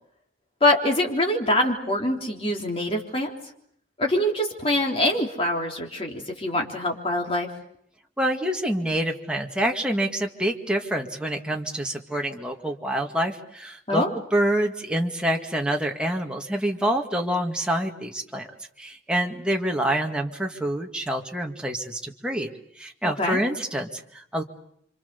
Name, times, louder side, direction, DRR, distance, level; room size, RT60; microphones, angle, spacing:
voice 1, 0.6-3.3 4.0-7.5 13.9-14.1 23.0-23.4, left 1 dB, 30° left, 1 dB, 3.6 m, -24 dB
voice 2, 8.2-14.0 14.3-18.5 18.8-22.5 22.8-24.4, right 1 dB, 5° right, 1 dB, 1.9 m, -27 dB
28.5 x 25.5 x 6.9 m, 0.70 s
head